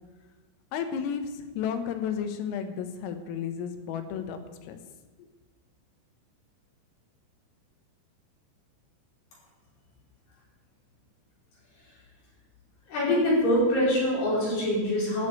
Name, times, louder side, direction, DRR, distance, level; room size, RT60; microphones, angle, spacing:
voice 1, 0.7-4.8, left 7 dB, 80° left, 7 dB, 3.8 m, -33 dB
voice 2, 12.9-15.3, left 1 dB, 50° left, -6 dB, 6.8 m, -24 dB
13.0 x 6.6 x 9.8 m, 1.2 s
omnidirectional pair, 6.0 m